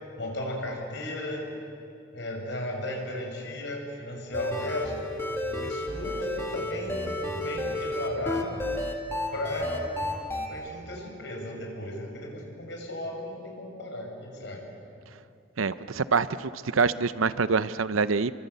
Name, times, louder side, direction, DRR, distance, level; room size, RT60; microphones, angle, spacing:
voice 1, 0.2-1.4 2.1-5.1 5.6-8.6 9.3-9.9 10.5-14.6, left 1 dB, 60° left, 1 dB, 6.2 m, -35 dB
sound 1, 4.3-10.5, left 1 dB, 10° left, 2.3 m, -32 dB
voice 2, 15.6-18.3, right 5 dB, 85° right, 15 dB, 0.7 m, -25 dB
28.0 x 24.0 x 8.2 m, 2.5 s
head